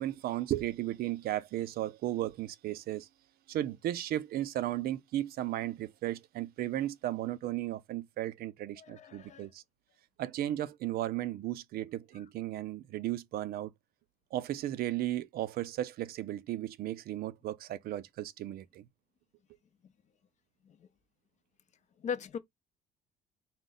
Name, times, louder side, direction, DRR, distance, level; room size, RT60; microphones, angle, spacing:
voice 1, 0.0-3.1 3.5-9.6 10.2-13.7 14.3-18.8, right 13 dB, 65° right, 0.4 m, -35 dB
voice 2, 8.8-9.5 19.8-19.9 20.6-20.9 22.0-22.4, left 7 dB, 45° left, 0.5 m, -39 dB
3.7 x 2.2 x 3.9 m
cardioid pair, 110°, 17 cm